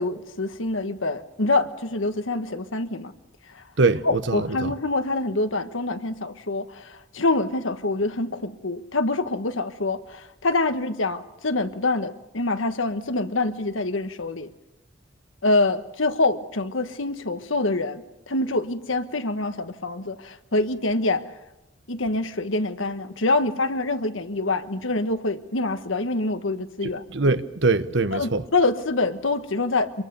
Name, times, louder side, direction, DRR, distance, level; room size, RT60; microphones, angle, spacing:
voice 1, 0.0-3.1 3.5-3.6 4.0-14.5 15.4-21.2 21.9-27.0 28.1-30.0, left 2 dB, 85° left, 1.4 m, -25 dB
voice 2, 3.8-4.7 26.8-28.4, right 3 dB, 65° right, 1.1 m, -23 dB
26.0 x 22.0 x 6.9 m
head